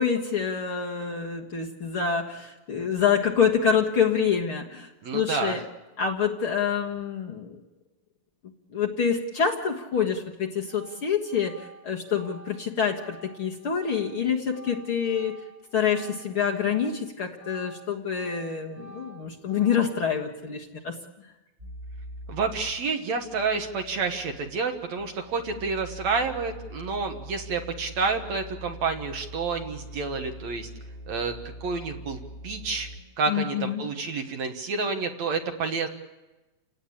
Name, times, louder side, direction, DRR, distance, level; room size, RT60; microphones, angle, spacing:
voice 1, 0.0-5.6 6.0-7.6 8.7-15.4 15.7-21.0 33.3-33.9, left 7 dB, 50° left, -1 dB, 2.0 m, -26 dB
voice 2, 5.0-5.6 22.3-30.7 31.1-31.3 31.6-32.9 33.2-35.9, right 4 dB, 60° right, 5 dB, 2.4 m, -29 dB
Organ, 10.1-10.3 10.6-17.0 17.3-20.2, right 2 dB, 15° left, 5.3 m, -49 dB
sound 1, 21.6-22.8 23.2-33.0, equal, 15° right, 5.5 m, -43 dB
29.5 x 18.0 x 8.8 m, 1.1 s
omnidirectional pair, 4.0 m